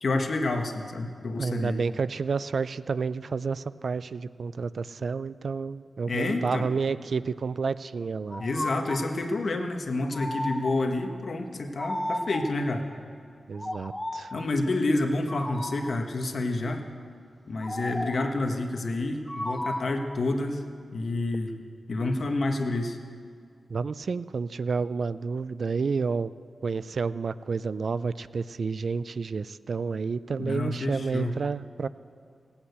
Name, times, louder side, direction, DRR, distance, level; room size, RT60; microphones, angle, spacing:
voice 1, 0.0-1.8 6.1-6.7 8.4-12.9 14.3-16.8 17.5-20.6 20.9-21.5 21.9-23.0 30.4-31.4, left 2 dB, 60° left, 4 dB, 1.3 m, -29 dB
voice 2, 1.4-8.4 13.5-14.3 23.7-26.3 26.6-31.9, right 5 dB, 60° right, 16 dB, 0.3 m, -30 dB
sound 1, 8.3-9.1 10.1-11.0 11.8-12.7 13.5-14.4 15.3-16.0 17.6-18.3 19.3-20.1, left 1 dB, 15° left, 0.8 m, -34 dB
19.0 x 8.7 x 8.1 m, 2.2 s
wide cardioid pair, 105°, 0 cm